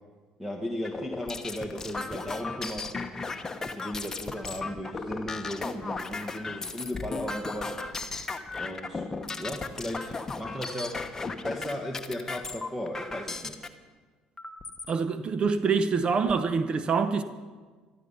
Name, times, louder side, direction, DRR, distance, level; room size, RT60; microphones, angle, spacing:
voice 1, 0.4-2.9 3.6-7.8 8.6-9.1 9.4-11.0 11.4-13.6, left 1 dB, 10° right, 1.5 m, -36 dB
sound 1, 0.8-13.7 14.4-14.9 15.5-15.6 15.9-16.5, left 3 dB, 20° left, 1.1 m, -36 dB
voice 2, 14.9-17.2, right 5 dB, 40° right, 0.7 m, -25 dB
13.5 x 13.0 x 5.6 m
supercardioid pair, 90°, 2 cm